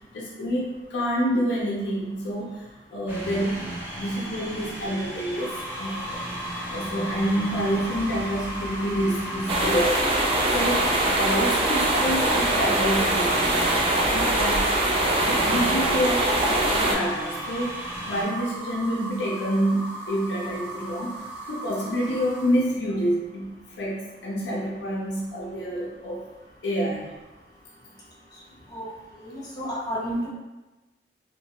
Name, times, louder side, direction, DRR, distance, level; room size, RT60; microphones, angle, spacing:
voice 1, 0.1-2.6 2.9-3.7 3.9-6.2 6.7-10.1 10.5-13.5 14.1-14.8 15.5-17.8 18.1-21.2 21.5-23.5 23.8-26.2 26.6-27.1, equal, 75° left, -4 dB, 0.5 m, -27 dB
sound 1, 3.1-18.2, equal, 10° right, 0.7 m, -36 dB
sound 2, 5.4-22.7, right 2 dB, 70° right, 0.7 m, -37 dB
sound 3, 9.5-16.9, right 1 dB, 30° right, 0.3 m, -23 dB
voice 2, 29.2-30.3, equal, 20° left, -8 dB, 0.9 m, -31 dB
2.5 x 2.3 x 2.8 m, 1.1 s
head